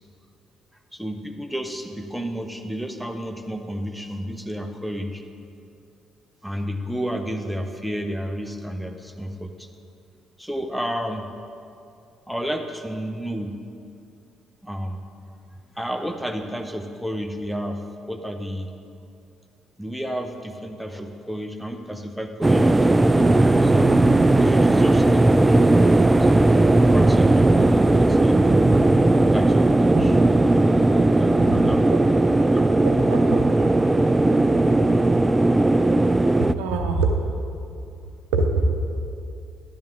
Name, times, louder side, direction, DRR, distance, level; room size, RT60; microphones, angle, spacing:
voice 1, 0.9-5.2 6.4-9.7 10.4-11.3 12.3-13.6 14.6-15.0 15.7-17.8 18.1-18.7 19.8-24.0 24.3-25.6 26.2-26.6 26.9-29.0 29.3-30.2 31.1-32.0 32.4-32.9, equal, ahead, 5 dB, 0.9 m, -31 dB
sound 1, 22.4-36.5, right 2 dB, 15° right, 0.3 m, -17 dB
voice 2, 33.1-33.7 36.6-37.1 38.3-39.0, right 3 dB, 70° right, 4 dB, 0.8 m, -23 dB
12.0 x 10.5 x 3.8 m, 2.5 s
figure-of-eight pair, 45°, 0 cm